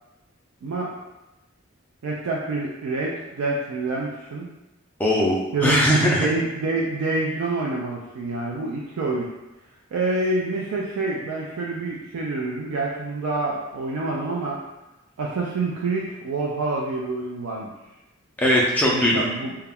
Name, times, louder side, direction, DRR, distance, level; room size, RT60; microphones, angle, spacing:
voice 1, 0.6-0.9 2.0-4.5 5.5-5.8 6.2-9.3 9.9-14.6 15.2-17.7 18.9-19.5, right 3 dB, 80° right, -3 dB, 0.3 m, -27 dB
voice 2, 5.0-6.3 18.4-19.3, equal, 5° left, -4 dB, 0.3 m, -20 dB
2.3 x 2.1 x 3.4 m, 1.0 s
head